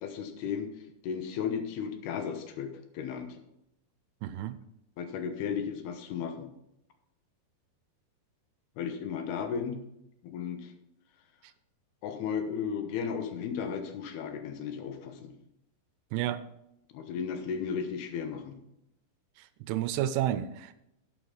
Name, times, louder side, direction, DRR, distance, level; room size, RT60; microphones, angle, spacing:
voice 1, 0.0-0.7 1.0-3.4 5.0-6.5 8.8-9.8 10.3-10.7 12.0-15.3 16.9-18.6, left 7 dB, 75° left, 7 dB, 2.9 m, -34 dB
voice 2, 4.2-4.6 16.1-16.4 19.4-20.7, right 12 dB, 80° right, 12 dB, 2.4 m, -31 dB
11.0 x 8.4 x 4.0 m, 0.82 s
omnidirectional pair, 4.8 m